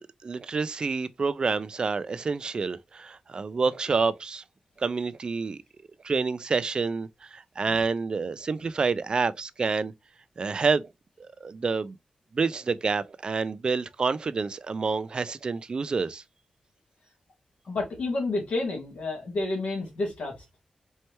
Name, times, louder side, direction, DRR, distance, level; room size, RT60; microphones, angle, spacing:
voice 1, 0.0-4.4 4.8-5.6 6.0-9.9 10.4-10.9 11.2-12.0 12.3-16.2, right 4 dB, 45° right, 0.4 m, -28 dB
voice 2, 17.6-20.4, left 2 dB, 80° left, 2.1 m, -30 dB
4.5 x 3.2 x 2.8 m
wide cardioid pair, 125°, 2 cm